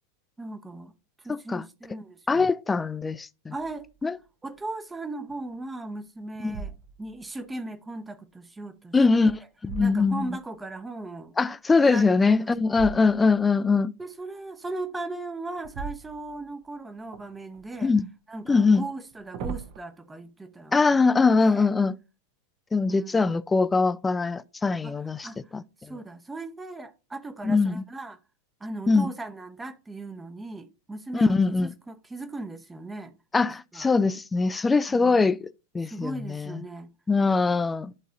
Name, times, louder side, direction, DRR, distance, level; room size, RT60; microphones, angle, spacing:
voice 1, 0.4-0.9 1.2-2.5 3.5-3.9 4.4-9.0 9.2-9.3 9.8-11.3 11.9-12.1 14.0-17.9 18.3-20.8 21.2-21.7 22.9-23.3 24.8-25.0 25.2-25.4 25.8-28.2 28.6-33.1 33.7-33.9 34.9-35.3 35.8-36.9, right 2 dB, 10° right, 0.8 m, -38 dB
voice 2, 1.3-1.7 2.3-3.5 4.0-4.2 6.4-6.6 8.9-10.3 11.4-13.9 17.8-18.1 18.5-18.8 20.7-21.9 22.7-25.3 25.5-25.6 27.4-27.8 28.9-29.1 31.1-31.7 33.3-36.6 37.1-37.9, left 4 dB, 10° left, 0.4 m, -22 dB
sound 1, 3.6-4.0 4.5-4.6 5.3-5.8 6.4-7.3 8.9-10.6 12.7-13.5 15.6-16.7 17.1-17.9 18.9-19.8, right 6 dB, 45° right, 0.8 m, -40 dB
11.5 x 4.0 x 2.6 m
figure-of-eight pair, 90°, 0 cm